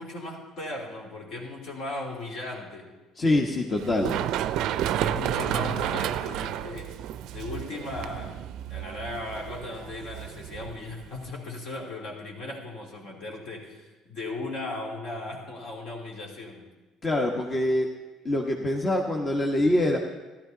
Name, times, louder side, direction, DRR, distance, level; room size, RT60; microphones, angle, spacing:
voice 1, 0.0-2.9 5.0-6.9 7.3-8.4 8.7-16.7, left 2 dB, 65° left, -2 dB, 2.8 m, -37 dB
voice 2, 3.2-4.2 17.0-17.9 18.2-20.0, left 1 dB, 35° left, 1 dB, 1.2 m, -24 dB
Run, 3.8-11.3, right 11 dB, 65° right, 0.4 m, -31 dB
13.5 x 11.5 x 3.9 m, 1.2 s
hypercardioid pair, 65°, 0 cm